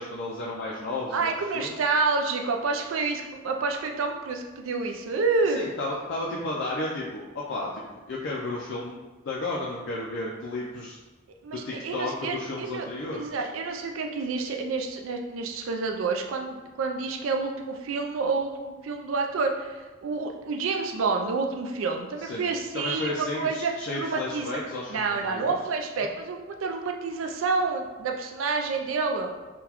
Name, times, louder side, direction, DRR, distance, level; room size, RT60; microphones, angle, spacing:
voice 1, 0.0-1.8 5.5-11.0 11.5-13.5 22.2-22.5 22.7-25.5 26.0-26.1, left 2 dB, 60° left, -4 dB, 0.4 m, -33 dB
voice 2, 1.1-5.6 11.4-12.9 13.1-24.6 24.9-29.3, right 4 dB, 85° right, 3 dB, 0.4 m, -29 dB
3.8 x 2.2 x 2.9 m, 1.2 s
head